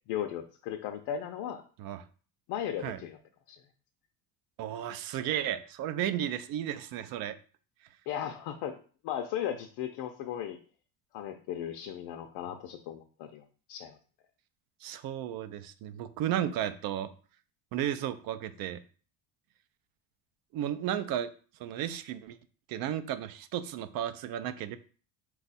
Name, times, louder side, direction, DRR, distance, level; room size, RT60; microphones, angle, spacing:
voice 1, 0.1-1.6 2.5-3.2 3.5-3.6 8.1-8.8 9.0-10.6 11.1-14.0, left 10 dB, 70° left, 5 dB, 0.5 m, -36 dB
voice 2, 4.6-7.3 14.8-17.1 17.7-18.8 20.5-21.3 21.6-22.4 22.7-24.8, right 10 dB, 60° right, 11 dB, 0.5 m, -33 dB
4.4 x 2.3 x 4.0 m, 0.40 s
cardioid pair, 150°, 39 cm